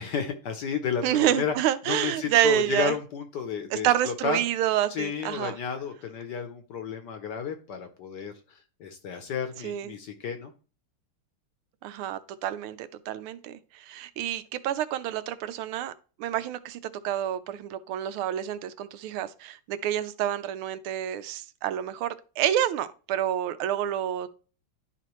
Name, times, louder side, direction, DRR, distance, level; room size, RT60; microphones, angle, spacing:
voice 1, 0.0-1.5 1.8-4.4 4.9-10.5, left 6 dB, 65° left, 1.2 m, -32 dB
voice 2, 1.0-2.9 3.7-5.6 9.6-9.9 11.8-15.9 16.2-16.8 17.0-24.3, right 11 dB, 80° right, 1.4 m, -28 dB
11.5 x 4.2 x 3.0 m
omnidirectional pair, 2.4 m